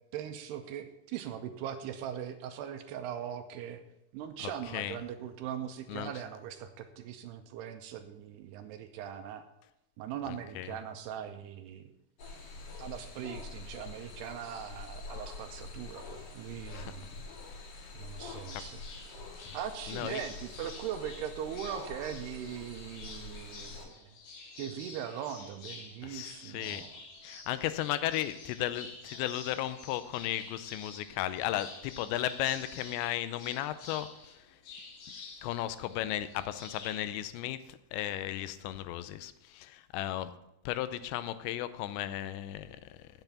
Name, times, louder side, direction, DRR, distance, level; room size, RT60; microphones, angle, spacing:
voice 1, 0.1-3.8 4.1-9.4 10.0-11.9 12.8-17.1 17.9-18.8 19.5-24.0 24.6-26.9, right 9 dB, 80° right, 8 dB, 2.5 m, -40 dB
voice 2, 4.4-5.0 5.9-6.1 10.6-10.7 16.7-16.9 18.5-18.6 19.9-20.2 26.0-26.8 27.2-34.4 35.4-40.3 40.7-43.1, left 13 dB, 85° left, 13 dB, 2.9 m, -35 dB
sound 1, 12.2-23.9, left 3 dB, 50° left, 3.2 m, -46 dB
sound 2, 18.2-37.1, left 4 dB, 70° left, 4.2 m, -49 dB
9.0 x 8.0 x 7.0 m, 0.86 s
omnidirectional pair, 5.1 m